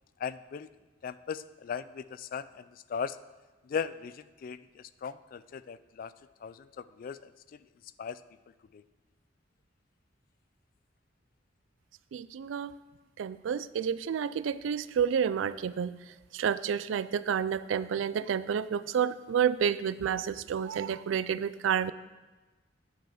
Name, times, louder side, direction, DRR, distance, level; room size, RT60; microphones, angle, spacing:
voice 1, 0.2-0.7 1.0-3.2 3.6-6.1 6.4-7.3 8.0-8.2 8.7-8.8, left 6 dB, 50° left, 16 dB, 0.3 m, -38 dB
voice 2, 12.1-12.7 13.2-16.0 16.3-21.9, right 7 dB, 90° right, 15 dB, 0.3 m, -30 dB
8.9 x 5.4 x 5.8 m, 1.2 s
head